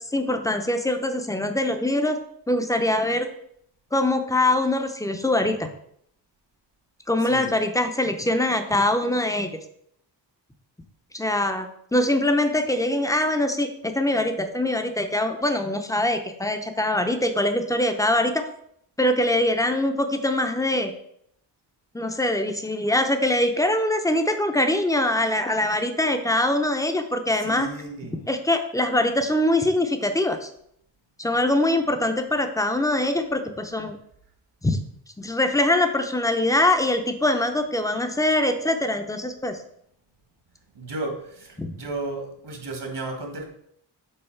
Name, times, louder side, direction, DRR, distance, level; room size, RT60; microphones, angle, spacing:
voice 1, 0.0-2.2 2.5-3.3 3.9-5.7 7.1-9.5 11.1-18.5 19.0-20.9 21.9-27.7 28.3-30.5 31.2-34.0 34.6-34.8 35.2-39.6 41.6-41.7, left 1 dB, 10° left, 6 dB, 0.7 m, -23 dB
voice 2, 7.2-7.5 27.3-28.2 40.7-43.4, right 2 dB, 65° right, 3 dB, 1.6 m, -34 dB
5.5 x 4.0 x 5.8 m, 0.71 s
wide cardioid pair, 95°, 43 cm